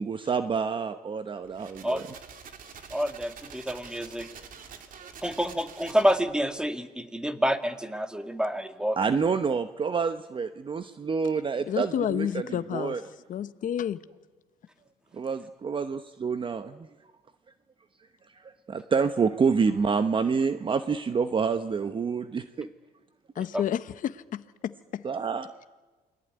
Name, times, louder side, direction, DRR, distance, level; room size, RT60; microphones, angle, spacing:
voice 1, 0.0-2.0 9.0-13.0 15.1-16.8 18.4-22.7 23.4-23.5 25.0-25.5, right 5 dB, 30° right, 0.9 m, -28 dB
sound 1, 1.4-6.4, right 6 dB, 55° right, 2.7 m, -47 dB
voice 2, 2.9-4.3 5.2-9.0 23.5-23.6, equal, 5° right, 1.9 m, -28 dB
voice 3, 11.7-13.0 13.3-14.0 23.3-25.1, left 10 dB, 50° left, 1.0 m, -30 dB
28.5 x 21.5 x 9.5 m
cardioid pair, 110°, 17 cm